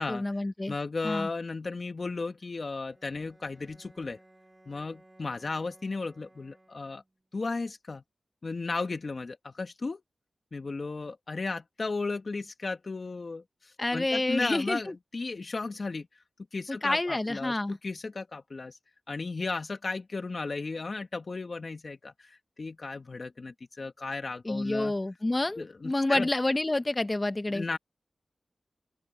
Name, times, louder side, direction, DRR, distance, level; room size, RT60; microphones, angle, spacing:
voice 1, 0.0-0.7 1.0-1.3 13.8-14.9 16.7-17.8 24.4-27.6, left 2 dB, 30° left, 1.5 m, -28 dB
voice 2, 0.7-4.2 4.7-7.0 7.3-8.0 8.4-10.0 10.5-16.1 16.5-18.8 19.1-24.9 25.6-26.3 27.5-27.8, left 3 dB, 55° left, 1.6 m, -35 dB
Bowed string instrument, 2.8-7.3, right 1 dB, 20° right, 2.9 m, -59 dB
open air
cardioid pair, 50°, 0 cm